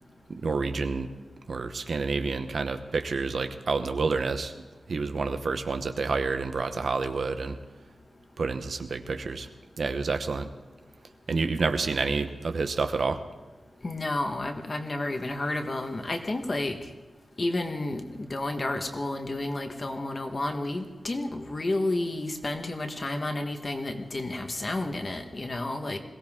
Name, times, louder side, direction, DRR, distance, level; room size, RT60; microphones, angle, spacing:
voice 1, 0.3-1.1 1.5-4.5 4.9-7.6 8.4-9.5 9.8-10.5 11.3-13.2, right 4 dB, 60° right, 8 dB, 1.0 m, -29 dB
voice 2, 13.8-16.8 17.4-26.0, left 2 dB, 30° left, 5 dB, 1.4 m, -31 dB
21.5 x 17.0 x 3.7 m, 1.3 s
wide cardioid pair, 165°, 0 cm